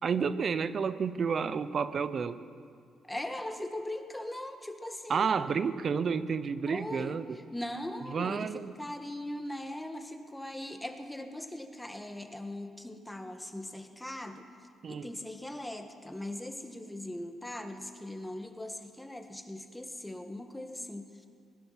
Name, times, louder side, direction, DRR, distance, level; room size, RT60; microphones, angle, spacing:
voice 1, 0.0-2.4 5.1-7.4 8.1-8.7 14.8-15.1, right 6 dB, 50° right, 13 dB, 0.7 m, -30 dB
voice 2, 3.0-5.3 6.6-7.2 7.5-14.5 14.9-21.3, left 1 dB, 10° left, 5 dB, 1.5 m, -40 dB
20.5 x 11.5 x 5.9 m, 2.3 s
cardioid pair, 90°, 0 cm